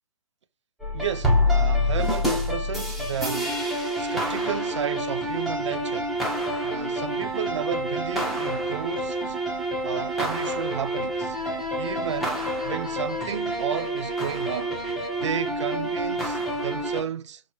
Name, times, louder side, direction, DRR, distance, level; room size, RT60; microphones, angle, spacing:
sound 1, 0.8-17.0, equal, ahead, 0.5 m, -27 dB
voice 1, 0.9-3.6 4.0-6.1 6.6-9.4 9.8-11.4 11.8-14.7 15.2-17.4, right 8 dB, 55° right, 0.5 m, -32 dB
4.6 x 2.1 x 2.9 m
figure-of-eight pair, 140°, 18 cm